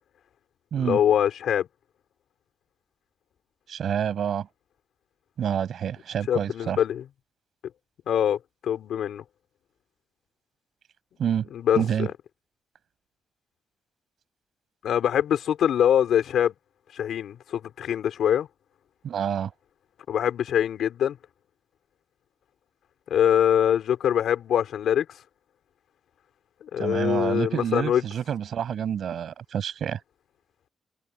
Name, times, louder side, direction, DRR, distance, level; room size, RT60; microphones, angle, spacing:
voice 1, 0.8-1.7 6.3-7.0 8.1-9.2 11.5-12.1 14.8-16.5 16.9-18.5 20.1-21.2 23.1-25.1 26.6-28.0, left 9 dB, 80° left, 5.0 m, -23 dB
voice 2, 3.7-4.5 5.4-6.8 11.2-11.5 11.8-12.1 19.0-19.5 26.8-30.0, right 8 dB, 65° right, 6.3 m, -28 dB
wide cardioid pair, 140°, 0 cm